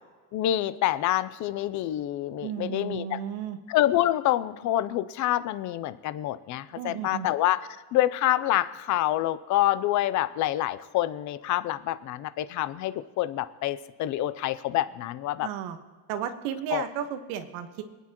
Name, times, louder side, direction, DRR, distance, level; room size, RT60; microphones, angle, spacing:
voice 1, 0.3-3.2 3.7-15.5 16.7-16.8, left 14 dB, 40° left, 14 dB, 0.5 m, -27 dB
voice 2, 2.4-3.6 6.7-7.3 15.4-15.8 16.1-17.8, right 9 dB, 85° right, 7 dB, 1.5 m, -33 dB
26.5 x 9.7 x 3.0 m, 1.4 s
cardioid pair, 170°, 47 cm